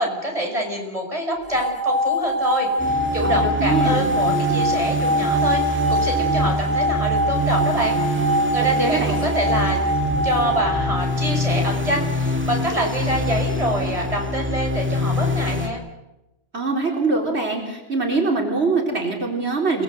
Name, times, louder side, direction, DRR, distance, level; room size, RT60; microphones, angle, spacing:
voice 1, 0.0-8.0 8.5-9.8 10.2-15.8, equal, 30° right, 1 dB, 6.1 m, -26 dB
sound 1, 1.5-11.6, left 1 dB, 5° left, 3.6 m, -24 dB
sound 2, 2.8-15.7, equal, 10° right, 2.3 m, -25 dB
voice 2, 3.2-4.1 8.8-9.1 16.5-19.8, right 3 dB, 80° right, 1 dB, 4.2 m, -23 dB
28.5 x 20.0 x 8.1 m, 0.95 s
omnidirectional pair, 1.1 m